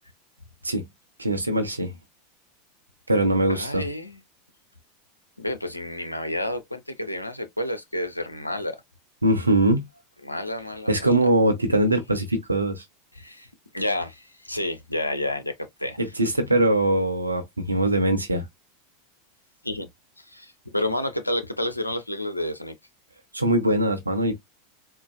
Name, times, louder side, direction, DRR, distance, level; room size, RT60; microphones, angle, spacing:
voice 1, 1.2-1.9 3.1-3.8 9.2-9.9 10.9-12.8 16.0-18.4 23.3-24.3, right 1 dB, 85° right, 0.8 m, -22 dB
voice 2, 3.5-4.2 5.4-8.8 10.2-11.2 13.1-13.5 13.7-15.5 15.8-16.0 19.6-19.9 20.2-22.7, left 1 dB, 90° left, 0.5 m, -30 dB
3.9 x 2.2 x 2.2 m
figure-of-eight pair, 85°, 0 cm